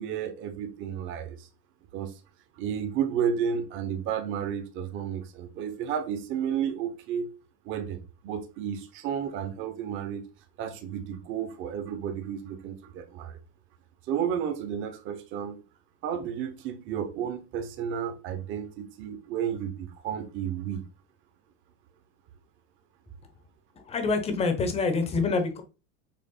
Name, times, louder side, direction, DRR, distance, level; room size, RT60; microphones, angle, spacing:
voice 1, 0.0-1.5 1.9-2.1 2.6-7.3 7.6-10.2 10.6-13.4 14.1-15.6 16.0-20.8, right 8 dB, 35° right, 1.1 m, -32 dB
voice 2, 23.8-25.6, left 4 dB, 15° left, 0.9 m, -26 dB
6.8 x 3.2 x 5.5 m
cardioid pair, 175°, 37 cm